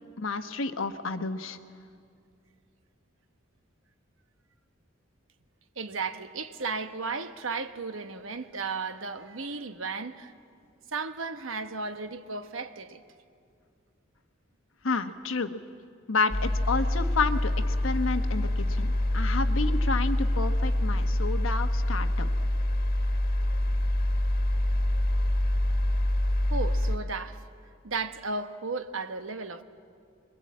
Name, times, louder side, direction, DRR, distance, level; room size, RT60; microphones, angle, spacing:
voice 1, 0.2-1.6 14.8-15.6 16.1-22.3, left 4 dB, 75° left, 1.2 m, -30 dB
voice 2, 5.8-10.3 10.9-13.0 26.5-27.4 27.8-29.6, right 4 dB, 75° right, 1.2 m, -34 dB
sound 1, 16.3-27.0, left 1 dB, 50° left, 1.6 m, -26 dB
25.5 x 21.5 x 8.6 m
head